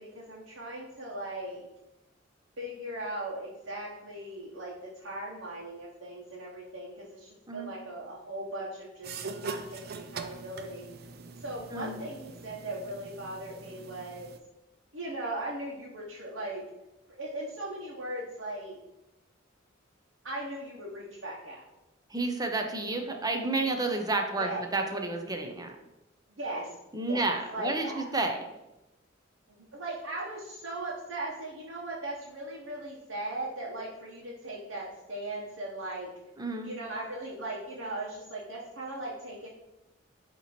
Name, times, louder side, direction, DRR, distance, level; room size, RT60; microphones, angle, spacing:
voice 1, 0.0-1.7 2.6-11.1 11.4-14.3 14.9-16.7 17.1-18.8 20.2-21.6 24.4-24.6 26.3-26.8 27.0-28.1 29.5-36.1 36.6-39.5, right 1 dB, 80° right, -5 dB, 1.2 m, -38 dB
sound 1, 9.0-14.4, right 4 dB, 55° right, 0.5 m, -42 dB
voice 2, 22.1-25.8 26.9-28.4 36.4-36.7, right 2 dB, 20° right, 4 dB, 0.7 m, -30 dB
8.6 x 3.0 x 4.3 m, 0.96 s
head